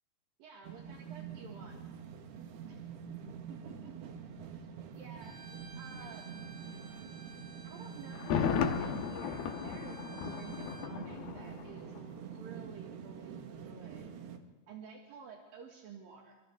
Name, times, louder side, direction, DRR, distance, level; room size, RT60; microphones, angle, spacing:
voice 1, 0.4-1.8 2.6-2.8 3.5-4.1 4.5-4.7 4.9-5.4 5.8-6.3 7.6-12.0 12.4-14.1 14.7-16.4, right 6 dB, 70° right, 0 dB, 3.4 m, -52 dB
sound 1, 0.6-14.4, right 7 dB, 90° right, 3.5 m, -46 dB
Bowed string instrument, 5.2-10.9, right 4 dB, 35° right, 2.0 m, -54 dB
Thunder, 8.1-12.1 12.3-12.4, left 7 dB, 75° left, 3.1 m, -35 dB
29.5 x 25.5 x 3.5 m, 1.2 s
omnidirectional pair, 4.4 m